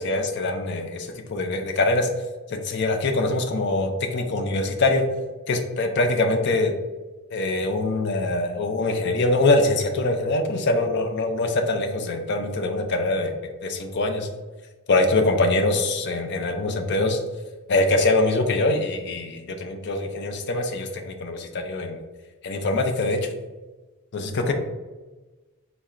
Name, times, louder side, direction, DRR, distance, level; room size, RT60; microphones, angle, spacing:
voice 1, 0.0-2.1 2.5-5.1 5.5-6.7 7.3-13.4 13.6-14.3 14.9-17.2 17.7-22.0 22.4-23.3 24.1-24.5, left 2 dB, 50° left, 5 dB, 0.4 m, -23 dB
4.2 x 2.0 x 3.6 m, 1.2 s
head